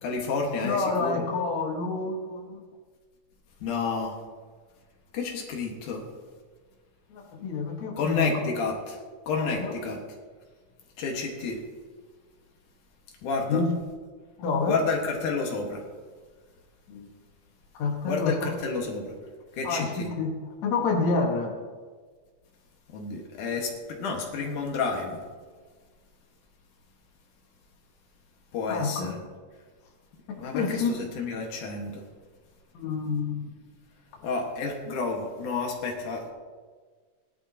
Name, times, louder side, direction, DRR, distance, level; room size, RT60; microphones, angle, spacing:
voice 1, 0.0-1.2 3.6-4.1 5.1-6.0 8.0-9.0 9.3-10.0 11.0-11.6 13.2-13.6 14.7-15.8 18.1-19.1 19.5-20.1 22.9-25.2 28.5-29.2 30.4-32.0 34.2-36.3, left 4 dB, 85° left, 1 dB, 3.1 m, -30 dB
voice 2, 0.6-2.6 7.1-8.4 9.4-9.7 13.5-13.7 14.4-14.7 16.9-17.1 17.7-18.5 19.6-20.3 20.6-21.6 28.7-29.1 30.3-31.0 32.7-33.5, left 4 dB, 70° left, 0 dB, 2.8 m, -28 dB
18.5 x 11.5 x 2.9 m, 1.5 s
omnidirectional pair, 3.5 m